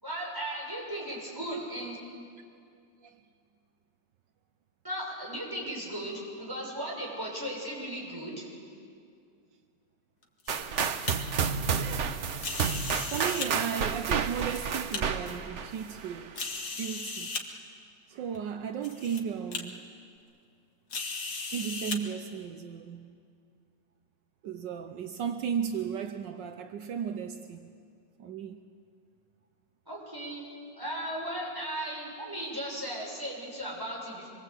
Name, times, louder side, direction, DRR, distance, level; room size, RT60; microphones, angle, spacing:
voice 1, 0.0-2.0 4.8-8.5 29.9-30.4 30.8-34.3, right 1 dB, 10° right, 6.6 m, -36 dB
sound 1, 10.2-11.1 12.4-13.5 14.2-15.0 15.7-15.8 16.4-17.4 18.3-18.4 18.8-19.2 19.5-19.6 20.9-22.0, left 4 dB, 55° left, 2.3 m, -36 dB
sound 2, 10.5-16.3, right 6 dB, 50° right, 1.0 m, -31 dB
voice 2, 11.8-12.2 13.1-16.4 16.8-17.3 18.1-19.8 21.5-23.1 24.4-27.7 28.2-28.6, right 7 dB, 75° right, 1.5 m, -35 dB
25.5 x 23.0 x 8.3 m
omnidirectional pair, 2.0 m